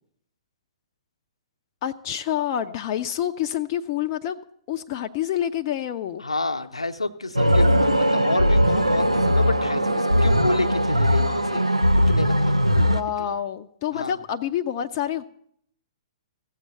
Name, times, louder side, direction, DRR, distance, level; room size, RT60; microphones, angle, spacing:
voice 1, 1.8-4.4 4.7-6.2 12.8-15.2, left 10 dB, 35° left, 7 dB, 0.5 m, -27 dB
voice 2, 6.2-11.6 12.1-12.6 13.2-13.3 13.9-14.2, left 2 dB, 80° left, 8 dB, 0.8 m, -29 dB
sound 1, 7.4-13.0, equal, 90° right, 0.7 m, -20 dB
15.5 x 7.5 x 6.9 m, 0.68 s
figure-of-eight pair, 115°, 3 cm